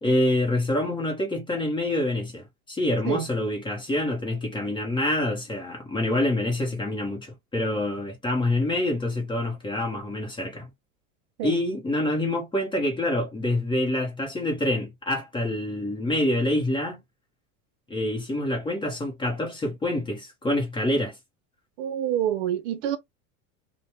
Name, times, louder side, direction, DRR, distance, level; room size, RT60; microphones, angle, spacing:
voice 1, 0.0-10.7 11.4-17.0 17.9-21.1, left 1 dB, 10° left, 0.8 m, -26 dB
voice 2, 21.8-23.0, right 11 dB, 60° right, 0.6 m, -27 dB
3.3 x 2.1 x 2.8 m
supercardioid pair, 160°, 42 cm